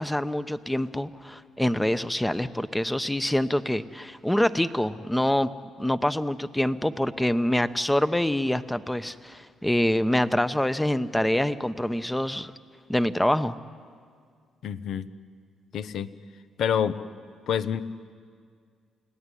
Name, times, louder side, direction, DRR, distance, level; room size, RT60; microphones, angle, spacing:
voice 1, 0.0-5.5 5.8-12.5 12.9-13.6, left 1 dB, 5° left, 12 dB, 0.9 m, -25 dB
voice 2, 14.6-15.1 15.7-16.1 16.6-17.0 17.5-17.8, left 8 dB, 70° left, 13 dB, 1.0 m, -27 dB
29.5 x 17.0 x 10.0 m, 2.1 s
cardioid pair, 90°, 0 cm